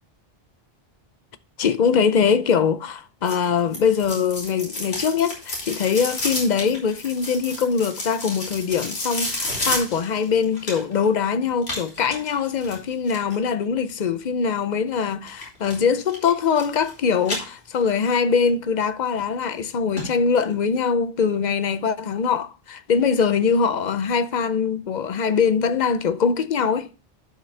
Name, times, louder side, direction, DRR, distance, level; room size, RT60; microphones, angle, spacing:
voice 1, 1.6-26.9, left 6 dB, 50° left, 0.6 m, -22 dB
sound 1, 3.3-11.1 11.6-13.4 15.3-15.8 16.1-16.9 17.2-18.1 18.5-18.6 19.2-19.3 19.6-19.7 20.0-20.1 20.4-20.5, left 1 dB, 85° left, 3.1 m, -31 dB
11.0 x 5.2 x 3.2 m
omnidirectional pair, 1.1 m